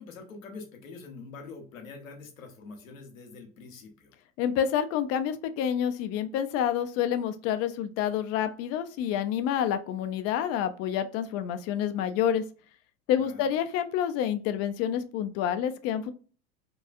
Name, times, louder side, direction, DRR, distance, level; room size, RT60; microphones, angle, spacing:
voice 1, 0.0-4.2 13.1-13.5, left 4 dB, 80° left, 4 dB, 0.8 m, -45 dB
voice 2, 4.4-12.4 13.1-16.1, left 9 dB, 40° left, 9 dB, 0.4 m, -28 dB
2.7 x 2.3 x 2.3 m, 0.38 s
hypercardioid pair, 85°, 40 cm